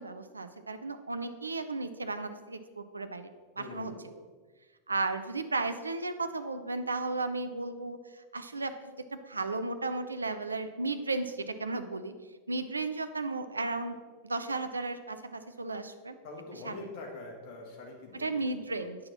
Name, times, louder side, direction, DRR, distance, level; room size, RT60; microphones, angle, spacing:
voice 1, 0.0-3.3 3.6-4.3 4.9-12.1 12.5-14.0 14.2-16.1 16.5-16.9 18.1-19.0, right 3 dB, 80° right, 9 dB, 0.5 m, -34 dB
voice 2, 3.6-4.0 16.2-18.5, left 2 dB, 40° left, -1 dB, 1.6 m, -44 dB
8.5 x 6.2 x 4.1 m, 1.4 s
figure-of-eight pair, 90°, 0 cm